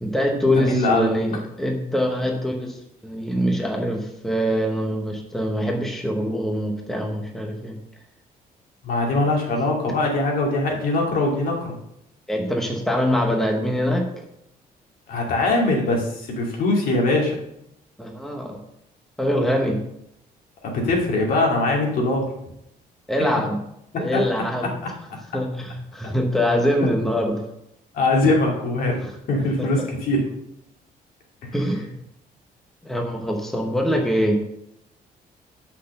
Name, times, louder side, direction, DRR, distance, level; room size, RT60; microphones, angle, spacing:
voice 1, 0.0-7.8 12.3-14.2 18.0-18.6 19.2-19.8 23.1-23.6 24.0-24.7 25.3-27.5 29.6-29.9 31.5-31.9 32.8-34.4, equal, ahead, 1 dB, 1.0 m, -24 dB
voice 2, 0.5-1.1 8.8-11.8 15.1-17.4 20.6-22.3 26.8-26.9 27.9-30.3, left 2 dB, 65° left, -1 dB, 2.4 m, -22 dB
6.5 x 5.8 x 6.6 m, 0.78 s
cardioid pair, 155°, 16 cm